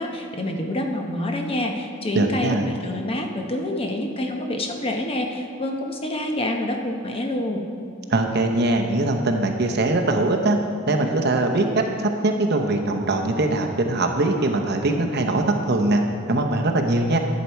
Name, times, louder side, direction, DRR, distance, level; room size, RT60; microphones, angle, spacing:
voice 1, 0.0-7.7, left 1 dB, 30° left, 2 dB, 0.8 m, -27 dB
voice 2, 2.1-2.7 8.1-10.6 10.9-16.0 16.3-17.2, right 2 dB, 55° right, 4 dB, 0.8 m, -21 dB
11.5 x 7.6 x 4.6 m, 2.4 s
head